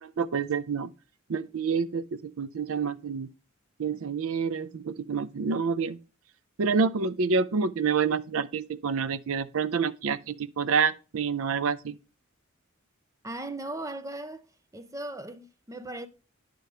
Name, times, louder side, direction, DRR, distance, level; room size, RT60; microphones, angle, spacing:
voice 1, 0.0-0.9 1.3-3.3 3.8-6.0 6.6-12.0, right 5 dB, 70° right, 0.5 m, -28 dB
voice 2, 13.2-14.5 14.7-16.1, right 2 dB, 15° right, 0.7 m, -37 dB
9.1 x 6.6 x 3.3 m
head